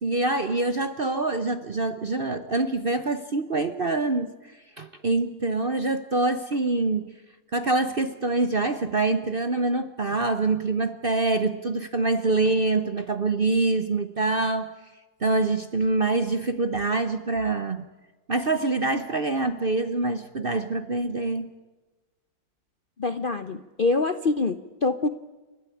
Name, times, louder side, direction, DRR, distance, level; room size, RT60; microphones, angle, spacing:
voice 1, 0.0-4.3 4.8-7.1 7.5-14.7 15.2-17.9 18.3-21.5, right 3 dB, 45° right, 11 dB, 0.8 m, -25 dB
voice 2, 23.0-25.1, left 3 dB, 50° left, 11 dB, 0.6 m, -25 dB
29.5 x 12.5 x 9.8 m, 1.2 s
omnidirectional pair, 2.0 m